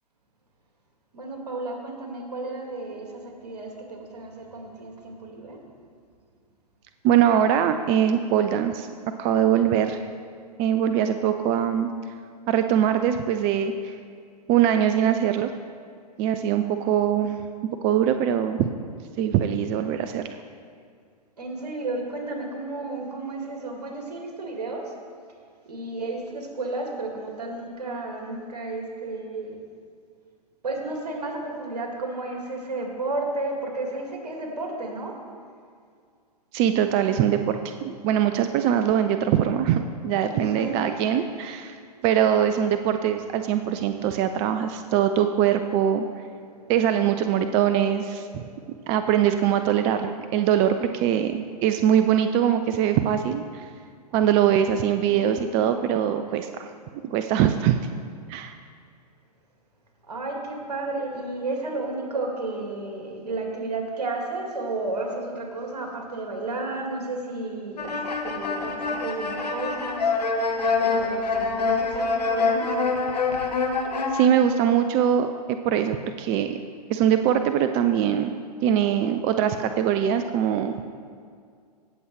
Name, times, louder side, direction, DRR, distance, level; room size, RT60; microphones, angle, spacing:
voice 1, 1.1-5.6 21.4-24.9 25.7-29.6 30.6-35.2 40.3-40.9 43.9-44.2 46.4-46.7 47.5-47.6 48.3-48.9 55.1-55.4 60.0-70.1 70.6-72.7, right 2 dB, 70° right, 1 dB, 2.2 m, -33 dB
voice 2, 7.0-8.9 9.2-10.0 10.6-11.9 12.5-13.9 14.5-15.5 16.2-17.4 17.8-18.7 19.2-20.2 36.5-41.7 42.0-46.0 46.7-48.4 48.9-53.7 54.1-56.7 57.1-57.8 58.3-58.6 74.1-76.6 76.9-78.3 78.6-80.8, right 9 dB, 30° right, 8 dB, 0.4 m, -22 dB
sound 1, 67.8-74.2, left 4 dB, 75° left, 1.1 m, -25 dB
17.0 x 6.9 x 3.2 m, 2.2 s
figure-of-eight pair, 110°, 21 cm